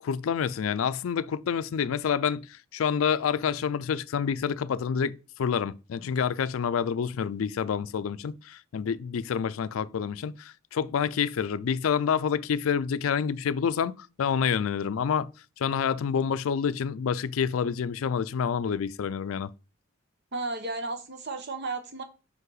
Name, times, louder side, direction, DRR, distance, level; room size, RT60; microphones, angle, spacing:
voice 1, 0.0-15.3 15.6-19.5, left 7 dB, 85° left, 0.4 m, -28 dB
voice 2, 20.3-22.0, right 3 dB, 55° right, 1.0 m, -33 dB
5.4 x 5.3 x 3.9 m
head